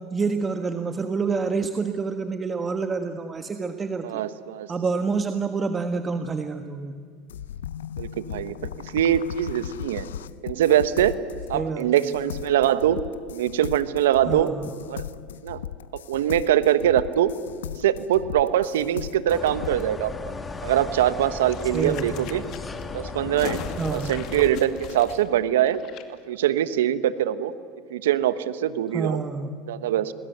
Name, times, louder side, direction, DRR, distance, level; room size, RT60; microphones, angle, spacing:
voice 1, 0.0-4.2 4.7-7.0 11.5-11.9 14.2-14.7 21.7-22.3 23.8-24.1 28.9-29.5, right 4 dB, 25° right, 7 dB, 1.4 m, -28 dB
voice 2, 4.0-4.7 8.0-8.5 8.9-10.1 10.4-11.1 11.5-13.0 13.3-14.5 14.9-15.1 15.4-15.6 15.9-17.3 17.8-20.1 20.6-22.4 22.9-23.6 23.9-25.8 26.3-27.5 27.9-29.2 29.7-30.1, right 11 dB, 80° right, 13 dB, 1.2 m, -23 dB
sound 1, 7.3-19.9, left 10 dB, 90° left, 0.6 m, -37 dB
sound 2, 19.3-24.5, left 4 dB, 20° left, 2.3 m, -36 dB
sound 3, 21.2-26.0 26.3-26.4, left 8 dB, 55° left, 2.4 m, -38 dB
27.0 x 20.5 x 8.1 m, 2.1 s
hypercardioid pair, 95°, 0 cm